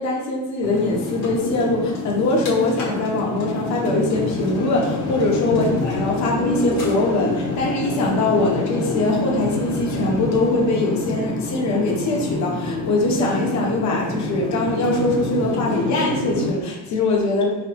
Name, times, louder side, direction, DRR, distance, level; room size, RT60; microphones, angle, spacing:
voice 1, 0.0-17.5, left 2 dB, 45° left, -2 dB, 1.0 m, -22 dB
sound 1, 0.6-16.5, left 2 dB, 60° left, 1.3 m, -27 dB
4.7 x 3.3 x 3.0 m, 1.1 s
cardioid pair, 150°, 39 cm